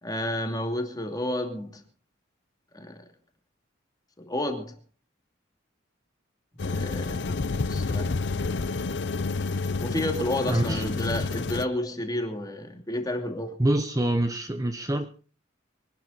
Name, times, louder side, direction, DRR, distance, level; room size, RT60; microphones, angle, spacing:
voice 1, 0.0-1.8 2.7-3.0 4.2-4.7 6.6-7.4 7.7-8.2 9.8-13.5, left 1 dB, 20° left, 2.7 m, -31 dB
sound 1, 6.6-11.7, left 3 dB, 60° left, 0.7 m, -29 dB
voice 2, 10.5-11.1 13.6-15.1, right 1 dB, 15° right, 1.0 m, -26 dB
24.5 x 11.5 x 4.2 m
head